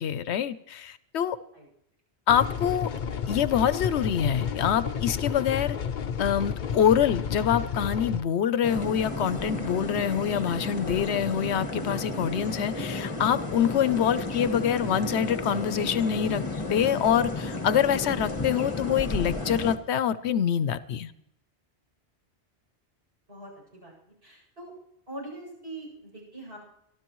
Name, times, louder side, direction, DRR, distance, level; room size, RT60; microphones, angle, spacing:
voice 1, 0.0-1.4 2.3-2.9 3.3-5.8 6.2-16.4 16.7-21.1, left 9 dB, 75° left, 14 dB, 0.9 m, -25 dB
sound 1, 2.3-8.2, left 7 dB, 50° left, 0.8 m, -31 dB
sound 2, 8.6-19.8, left 3 dB, 30° left, 1.2 m, -32 dB
voice 2, 23.3-23.9 24.2-24.7 25.1-26.6, right 1 dB, 60° right, -2 dB, 7.8 m, -42 dB
25.5 x 12.5 x 3.1 m, 0.77 s
omnidirectional pair, 1.1 m